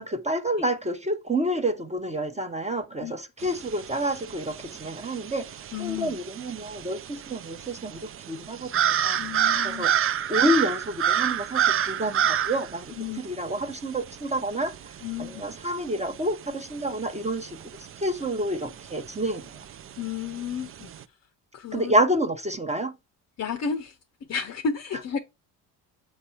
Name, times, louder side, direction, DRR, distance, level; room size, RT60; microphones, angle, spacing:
voice 1, 0.0-5.5 5.8-9.2 9.6-9.9 10.3-14.7 15.2-17.6 18.0-19.4 21.7-23.0, right 1 dB, 15° right, 0.9 m, -28 dB
sound 1, 3.4-21.0, right 9 dB, 30° right, 0.4 m, -30 dB
voice 2, 5.7-6.2 9.2-9.9 12.9-13.2 15.0-15.4 20.0-20.9 21.5-22.0 23.4-24.0 24.3-25.2, left 6 dB, 35° left, 0.7 m, -32 dB
6.9 x 3.3 x 4.2 m
supercardioid pair, 65°, 46 cm